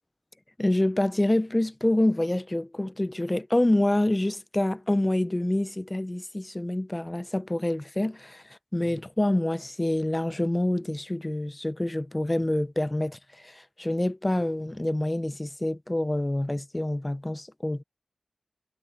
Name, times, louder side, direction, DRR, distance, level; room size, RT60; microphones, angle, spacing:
voice 1, 0.6-8.4 8.7-17.8, left 1 dB, 20° left, 0.5 m, -27 dB
wide cardioid pair, 85°, 0 cm